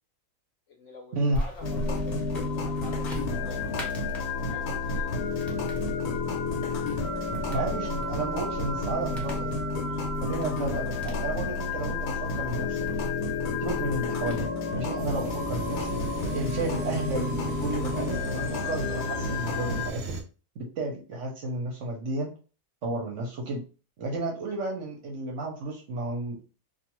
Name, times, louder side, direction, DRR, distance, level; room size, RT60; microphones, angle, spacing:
voice 1, 0.7-3.9 4.4-5.3, left 3 dB, 65° left, 2 dB, 0.8 m, -47 dB
sound 1, 1.3-14.4, equal, ahead, 0.4 m, -39 dB
sound 2, 1.6-19.9, left 3 dB, 80° left, 1.1 m, -31 dB
voice 2, 7.5-9.8 10.2-12.9 13.6-16.0 16.3-20.0 20.5-22.3 22.8-23.6 24.0-26.4, right 2 dB, 60° right, 0 dB, 0.9 m, -32 dB
sound 3, 15.0-20.2, right 3 dB, 85° right, 0.5 m, -37 dB
2.4 x 2.4 x 2.9 m, 0.34 s
omnidirectional pair, 1.6 m